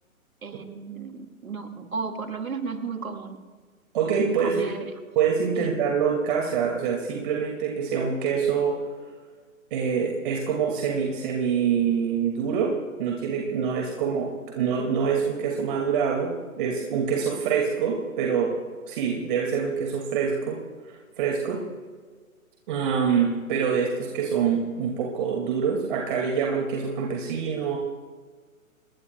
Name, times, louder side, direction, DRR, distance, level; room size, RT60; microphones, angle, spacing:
voice 1, 0.4-3.4 4.4-4.9 5.6-5.7, right 5 dB, 75° right, 6 dB, 2.2 m, -34 dB
voice 2, 3.9-4.7 5.2-8.8 9.7-12.7 13.0-18.6 18.8-20.6 21.2-21.6 22.7-27.8, right 6 dB, 35° right, 0 dB, 2.3 m, -25 dB
28.5 x 20.5 x 2.3 m, 1.5 s
figure-of-eight pair, 130°, 43 cm